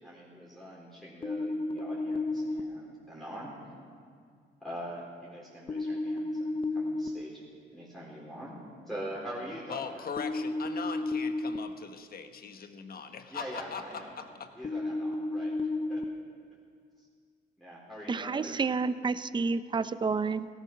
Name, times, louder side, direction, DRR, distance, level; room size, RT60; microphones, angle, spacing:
voice 1, 0.0-3.6 4.6-7.4 7.7-8.6 8.9-10.0 13.3-14.1 14.5-16.0 17.6-18.5, equal, ahead, -6 dB, 4.0 m, -43 dB
sound 1, 1.2-2.6 5.7-7.1 10.2-11.6 14.6-16.0, left 2 dB, 25° left, 0.7 m, -32 dB
voice 2, 9.7-14.5, left 6 dB, 50° left, 7 dB, 1.3 m, -40 dB
voice 3, 18.1-20.5, right 4 dB, 25° right, 14 dB, 0.5 m, -30 dB
18.0 x 12.5 x 6.1 m, 2.2 s
cardioid pair, 90°, 20 cm